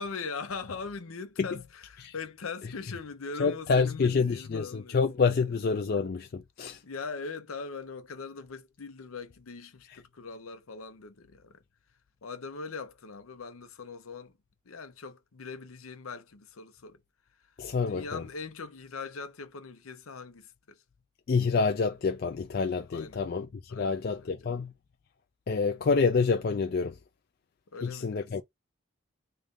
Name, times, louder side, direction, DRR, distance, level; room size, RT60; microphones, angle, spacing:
voice 1, 0.0-5.0 6.8-11.6 12.2-14.4 14.6-17.0 17.3-20.8 22.9-23.3 23.7-24.5 27.7-28.4, left 4 dB, 90° left, 0.7 m, -41 dB
voice 2, 3.4-6.8 17.6-18.2 21.3-24.7 25.5-27.0 27.8-28.4, left 5 dB, 45° left, 0.3 m, -27 dB
3.1 x 2.6 x 3.6 m
head